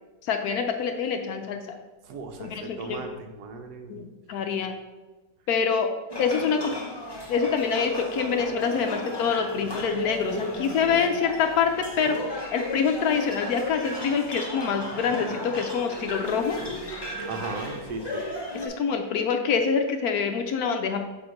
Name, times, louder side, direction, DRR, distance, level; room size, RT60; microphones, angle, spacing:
voice 1, 0.2-1.8 2.4-3.0 3.9-4.8 5.5-5.9 6.2-6.8 7.3-16.6 18.5-21.0, left 6 dB, 70° left, 6 dB, 1.0 m, -26 dB
voice 2, 2.1-4.1 17.3-18.2, right 3 dB, 75° right, 5 dB, 1.3 m, -36 dB
sound 1, 6.1-18.7, left 1 dB, 25° left, 0.5 m, -35 dB
7.0 x 2.9 x 5.0 m, 1.2 s
omnidirectional pair, 1.8 m